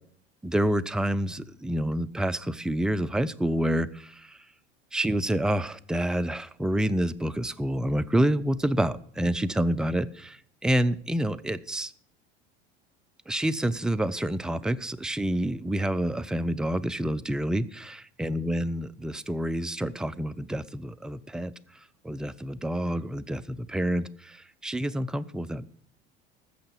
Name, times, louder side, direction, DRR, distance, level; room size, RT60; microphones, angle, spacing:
voice 1, 0.4-4.4 4.9-10.4 10.6-11.9 13.3-21.5 22.0-25.6, right 1 dB, ahead, 15 dB, 0.5 m, -28 dB
14.5 x 6.5 x 7.0 m, 0.62 s
hypercardioid pair, 80°, 32 cm